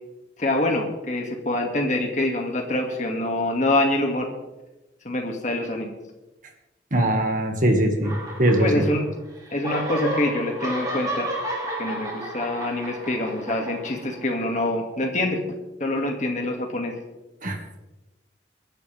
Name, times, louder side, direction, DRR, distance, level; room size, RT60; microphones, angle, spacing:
voice 1, 0.4-4.3 5.0-5.9 8.6-9.0 9.5-11.3 11.8-15.4 15.8-16.9, left 1 dB, 40° left, 1 dB, 2.4 m, -25 dB
voice 2, 6.9-8.8 17.4-17.6, right 1 dB, 45° right, 4 dB, 2.1 m, -21 dB
sound 1, 8.0-9.2 9.4-14.4, right 1 dB, 20° right, 3.2 m, -32 dB
22.5 x 11.5 x 3.6 m, 1.0 s
head